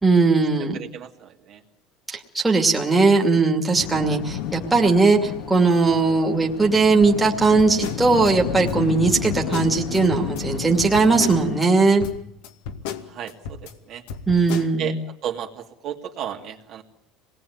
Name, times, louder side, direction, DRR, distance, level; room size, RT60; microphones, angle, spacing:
voice 1, 0.0-0.8 2.1-12.0 14.3-14.9, right 3 dB, 10° right, 0 dB, 2.6 m, -19 dB
voice 2, 0.7-1.6 13.0-14.0 14.8-15.0 15.2-16.8, right 9 dB, 45° right, 2 dB, 2.6 m, -33 dB
sound 1, 3.7-11.6, left 9 dB, 60° left, 2.0 m, -31 dB
sound 2, 7.4-8.3 8.7-10.4 10.8-11.7 12.0-13.7 14.1-14.7, left 7 dB, 80° left, 2.3 m, -35 dB
26.0 x 20.0 x 9.5 m, 0.71 s
cardioid pair, 145°, 0 cm